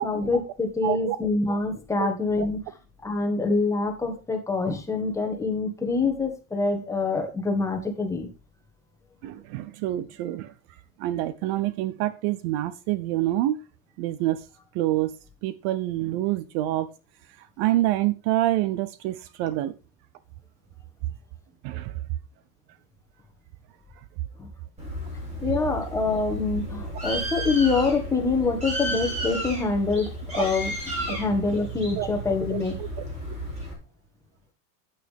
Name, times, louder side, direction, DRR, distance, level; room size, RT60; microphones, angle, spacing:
voice 1, 0.0-2.6 3.0-8.3 24.4-24.5 25.4-30.7 31.1-32.7, left 3 dB, 10° left, 1.6 m, -25 dB
voice 2, 0.8-1.2 2.0-2.1 9.2-10.5 11.0-13.6 14.0-14.5 14.7-15.2 15.4-16.9 17.4-19.7 21.6-22.0 30.3-30.5 31.1-31.2 32.0-32.1 32.5-32.9, right 15 dB, 55° right, 0.6 m, -27 dB
Bird, 24.8-33.7, equal, 15° right, 4.4 m, -33 dB
9.2 x 8.7 x 3.5 m
cardioid pair, 160°, 37 cm